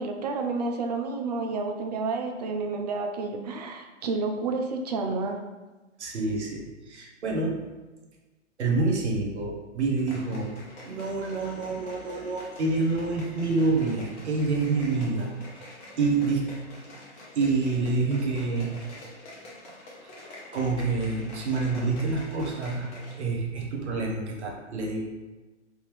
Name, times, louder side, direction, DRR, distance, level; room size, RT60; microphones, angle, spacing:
voice 1, 0.0-5.4, right 3 dB, 35° right, 4 dB, 0.4 m, -30 dB
voice 2, 6.0-7.6 8.6-10.5 10.8-15.3 15.6-16.5 17.4-18.7 20.5-22.9 23.2-25.0, right 3 dB, 65° right, 0 dB, 0.9 m, -27 dB
sound 1, 10.0-23.3 23.6-23.7, left 1 dB, 15° left, 0.6 m, -46 dB
3.5 x 2.8 x 3.1 m, 1.2 s
figure-of-eight pair, 115°, 37 cm